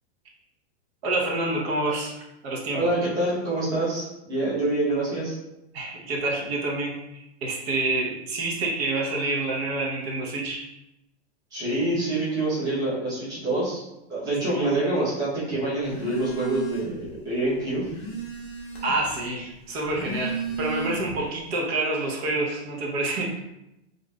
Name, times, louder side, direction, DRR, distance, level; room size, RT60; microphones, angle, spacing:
voice 1, 1.0-2.1 2.4-2.9 5.7-10.6 14.3-14.4 18.8-23.4, right 2 dB, 60° right, -1 dB, 0.9 m, -28 dB
voice 2, 2.7-5.4 11.5-13.8 14.1-17.9, right 2 dB, 10° right, -10 dB, 0.8 m, -26 dB
Telephone, 15.8-17.1 17.5-19.1 19.8-21.3, right 5 dB, 25° left, 0.5 m, -34 dB
2.6 x 2.4 x 3.1 m, 0.90 s
supercardioid pair, 165°, 35 cm